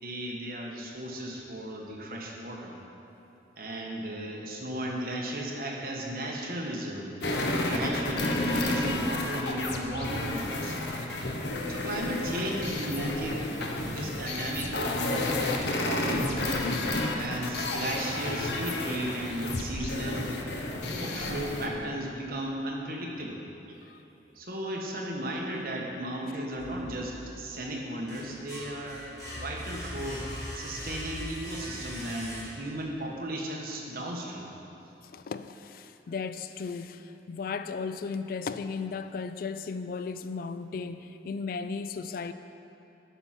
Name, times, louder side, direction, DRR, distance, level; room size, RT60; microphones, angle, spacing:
voice 1, 0.0-2.7 3.6-10.8 11.7-16.4 17.0-20.3 20.8-23.4 23.7-23.8 24.3-30.3 30.5-34.5, right 1 dB, 55° right, -1 dB, 1.2 m, -35 dB
sound 1, 7.2-21.7, left 2 dB, 70° left, 0.9 m, -31 dB
sound 2, 26.5-27.4 27.8-32.8, equal, 20° left, 2.2 m, -40 dB
voice 2, 35.1-42.3, left 5 dB, 55° left, 11 dB, 0.3 m, -35 dB
9.8 x 5.6 x 5.9 m, 2.9 s
head